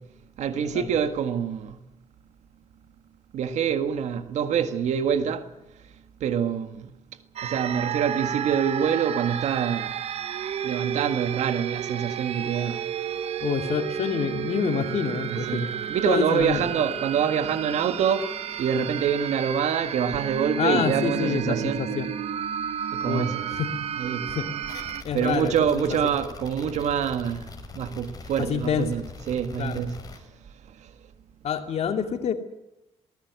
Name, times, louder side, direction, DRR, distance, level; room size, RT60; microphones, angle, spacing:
voice 1, 0.4-1.8 3.3-5.5 6.2-6.9 7.4-9.9 10.6-12.8 15.3-18.3 18.6-21.8 22.9-23.5 24.0-24.3 25.1-27.5 27.7-30.0, right 8 dB, 75° right, 1.7 m, -26 dB
sound 1, 7.4-25.0, right 9 dB, 60° right, 0.9 m, -32 dB
voice 2, 13.4-15.7 16.1-16.6 20.6-22.1 23.1-23.7 24.3-24.5 25.0-25.5 26.0-26.1 28.4-28.9 29.6-29.8 31.4-32.3, left 7 dB, 65° left, 2.5 m, -27 dB
sound 2, 24.7-30.2, left 4 dB, 30° left, 5.1 m, -42 dB
20.5 x 18.5 x 9.5 m
cardioid pair, 110°, 12 cm